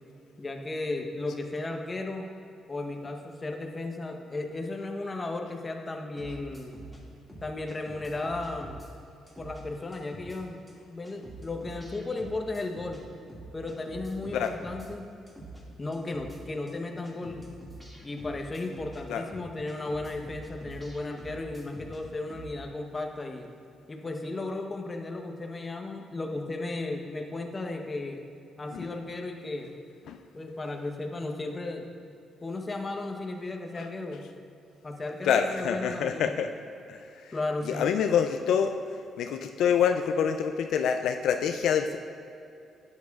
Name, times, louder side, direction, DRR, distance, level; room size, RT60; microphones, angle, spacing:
voice 1, 0.4-2.3 2.7-6.8 7.4-8.8 9.4-10.6 10.9-13.0 13.5-15.1 15.8-17.5 18.0-23.5 23.9-28.2 28.6-29.8 30.3-31.9 32.4-34.3 34.8-36.3 37.3-37.9, left 2 dB, 25° left, 3 dB, 0.9 m, -35 dB
sound 1, 6.2-7.0 7.3-8.9 9.3-9.6 9.9-10.4 10.7-10.8 11.0-13.0 13.3-14.9 15.3-15.6 15.9-16.4 16.7-16.8 17.0-19.0 19.3-22.0 22.3-22.5, right 2 dB, 5° right, 2.0 m, -46 dB
voice 2, 35.2-36.5 36.9-37.3 37.6-38.7 39.2-42.0, left 7 dB, 75° left, 6 dB, 0.3 m, -26 dB
11.5 x 8.3 x 2.4 m, 2.7 s
cardioid pair, 90°, 0 cm